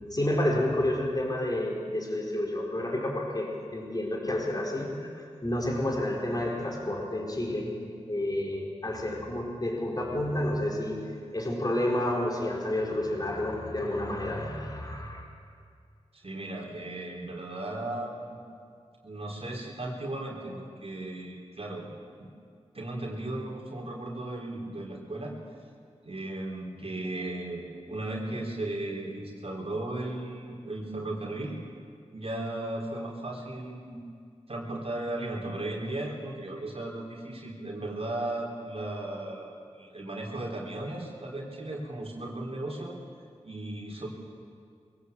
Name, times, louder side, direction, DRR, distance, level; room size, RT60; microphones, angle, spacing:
voice 1, 0.0-15.2, left 1 dB, 35° left, 0 dB, 4.4 m, -30 dB
voice 2, 16.1-18.4 19.0-21.9 22.2-22.3 22.7-25.3 26.0-27.6 27.9-31.6 32.1-34.0 34.5-43.0 43.4-44.1, right 1 dB, 55° right, -1 dB, 3.9 m, -36 dB
22.0 x 17.0 x 8.3 m, 2.2 s
cardioid pair, 50°, 12 cm